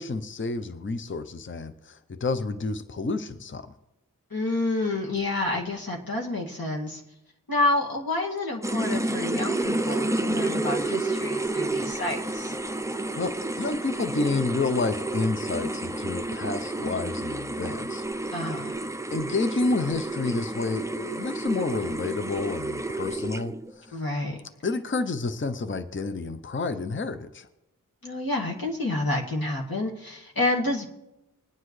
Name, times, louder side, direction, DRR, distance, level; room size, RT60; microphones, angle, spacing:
voice 1, 0.0-3.7 13.2-18.0 19.1-24.0 24.6-27.5, left 3 dB, 35° left, 10 dB, 0.6 m, -29 dB
voice 2, 4.3-7.0 7.5-12.6 18.3-18.8 23.9-24.4 28.0-30.9, left 2 dB, 90° left, -2 dB, 2.1 m, -29 dB
sound 1, 8.6-23.7, right 2 dB, 10° right, 0.5 m, -30 dB
21.0 x 9.7 x 3.2 m, 0.93 s
wide cardioid pair, 55°, 34 cm